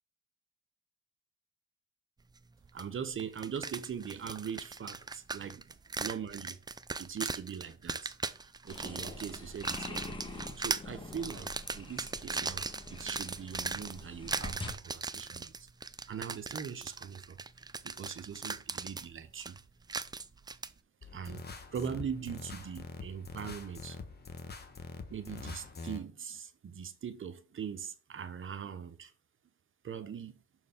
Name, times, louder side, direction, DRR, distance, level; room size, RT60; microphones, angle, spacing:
voice 1, 2.7-6.6 7.0-12.6 12.9-15.7 16.1-17.4 17.8-19.6 21.0-24.0 25.1-29.1 29.8-30.4, right 7 dB, 40° right, 0.8 m, -41 dB
sound 1, 2.8-2.9 3.2-20.7, right 4 dB, 15° right, 0.4 m, -39 dB
sound 2, 8.7-14.7, left 2 dB, 15° left, 1.4 m, -45 dB
sound 3, 21.0-26.0, left 4 dB, 35° left, 1.2 m, -45 dB
6.5 x 4.6 x 3.6 m
cardioid pair, 90°, 30 cm